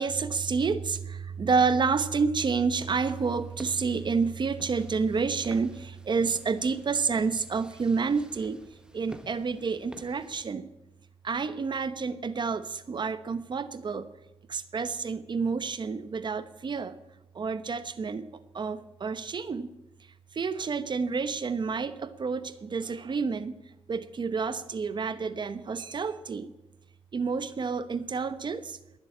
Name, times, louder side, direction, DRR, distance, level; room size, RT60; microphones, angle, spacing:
voice 1, 0.0-8.6 8.9-10.7 11.2-14.1 14.5-17.0 17.3-18.3 18.5-19.7 20.3-23.5 23.9-26.5 27.1-28.8, right 5 dB, 45° right, 13 dB, 1.0 m, -29 dB
sound 1, 2.6-10.4, right 1 dB, 10° right, 1.1 m, -52 dB
20.5 x 7.8 x 8.6 m, 0.96 s
wide cardioid pair, 110°, 11 cm